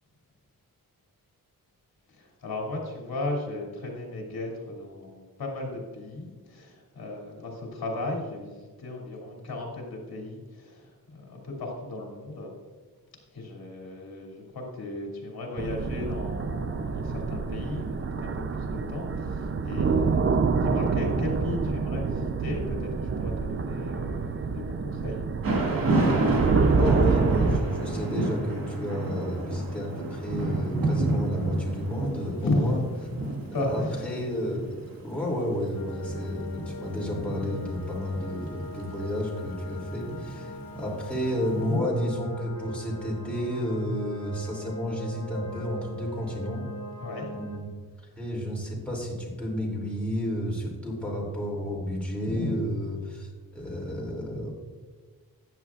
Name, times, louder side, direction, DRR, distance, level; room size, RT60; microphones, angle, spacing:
voice 1, 2.1-12.5 13.3-20.3 20.5-25.2 32.4-32.9 33.3-34.1 40.7-40.8 41.5-41.9 47.0-47.3 48.1-48.2 52.2-52.6, left 2 dB, 80° left, -1 dB, 2.6 m, -35 dB
sound 1, 15.6-27.6, right 4 dB, 35° right, 0.5 m, -27 dB
Thunder / Rain, 25.4-41.5, right 2 dB, 65° right, 2.0 m, -30 dB
voice 2, 26.8-32.8 33.7-46.7 47.3-47.7 48.2-54.5, equal, 5° left, -3 dB, 2.7 m, -31 dB
sound 2, 35.7-47.6, left 1 dB, 45° left, 2.3 m, -41 dB
14.0 x 9.4 x 2.4 m, 1.5 s
wide cardioid pair, 145°, 36 cm